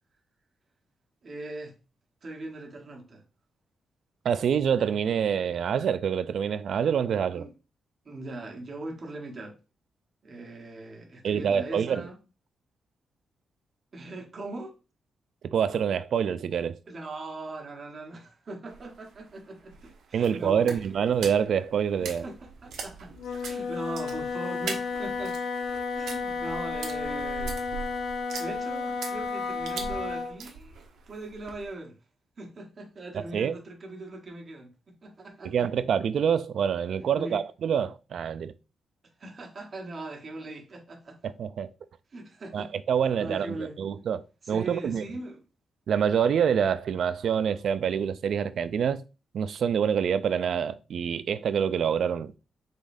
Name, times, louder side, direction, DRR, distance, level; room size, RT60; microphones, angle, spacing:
voice 1, 1.2-1.7 2.2-3.2 7.3-7.5 8.0-9.6 10.2-12.1 13.9-14.8 16.9-20.8 22.0-23.1 23.4-25.4 25.9-27.6 28.3-30.7 31.1-32.0 32.4-34.7 35.0-35.5 37.1-37.4 39.2-41.2 42.1-42.7 43.2-43.8 44.4-45.4, right 2 dB, 35° right, 1.2 m, -40 dB
voice 2, 4.2-7.4 11.2-12.1 15.4-16.8 20.1-22.2 33.1-33.5 35.4-38.5 41.2-41.7 42.5-45.0 45.9-49.0 49.3-52.3, right 7 dB, 60° right, 0.4 m, -26 dB
sound 1, 18.7-31.7, right 5 dB, 90° right, 1.0 m, -42 dB
Wind instrument woodwind instrument, 23.2-30.4, left 4 dB, 80° left, 0.9 m, -32 dB
5.1 x 3.8 x 2.6 m
wide cardioid pair, 145°, 0 cm